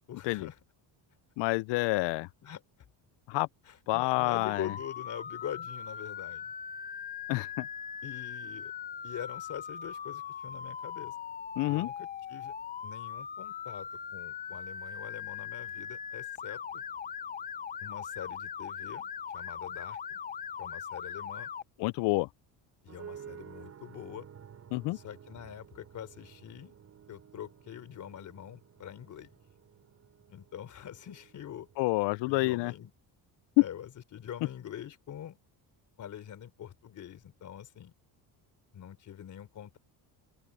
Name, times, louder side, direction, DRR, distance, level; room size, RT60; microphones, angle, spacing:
voice 1, 0.1-0.6 2.4-2.6 3.7-6.5 8.0-8.7 9.0-11.2 11.7-12.5 12.8-16.8 17.8-20.2 20.6-21.5 22.8-24.3 24.9-26.8 27.1-29.4 30.3-31.7 32.2-32.9 33.6-35.4 36.0-37.9 38.7-39.8, left 10 dB, 45° left, 3.6 m, -44 dB
voice 2, 1.4-2.3 3.3-3.5 3.9-4.7 7.3-7.7 11.6-11.9 21.8-22.3 24.7-25.0 31.8-32.7, left 22 dB, 80° left, 0.6 m, -29 dB
Motor vehicle (road) / Siren, 4.3-21.6, left 7 dB, 20° left, 0.5 m, -40 dB
sound 1, 22.9-32.9, right 8 dB, 40° right, 7.7 m, -53 dB
open air
cardioid pair, 155°, 42 cm